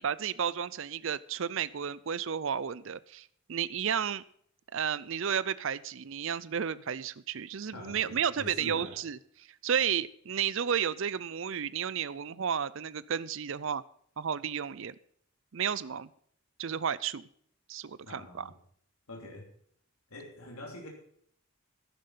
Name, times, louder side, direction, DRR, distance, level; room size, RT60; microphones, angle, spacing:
voice 1, 0.0-4.2 4.7-9.2 9.6-13.8 14.2-15.0 15.5-16.1 16.6-17.2 17.7-18.5, right 8 dB, 60° right, 0.5 m, -32 dB
voice 2, 7.7-9.0 18.0-18.5 19.1-19.5 20.1-20.9, left 1 dB, 75° left, 3.0 m, -44 dB
12.0 x 10.5 x 5.8 m
head